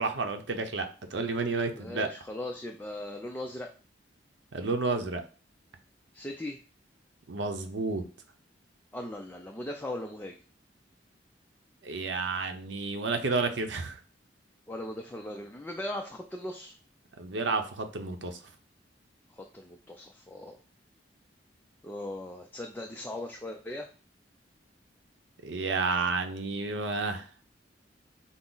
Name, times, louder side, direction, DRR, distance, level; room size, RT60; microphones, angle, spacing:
voice 1, 0.0-2.1 4.5-5.2 7.3-8.0 11.8-14.0 17.2-18.4 25.4-27.3, right 3 dB, 80° right, 6 dB, 0.7 m, -31 dB
voice 2, 1.8-3.7 6.1-6.6 8.9-10.4 14.7-16.7 19.4-20.6 21.8-23.9, left 1 dB, 10° left, 2 dB, 0.4 m, -38 dB
5.9 x 2.0 x 3.9 m, 0.37 s
head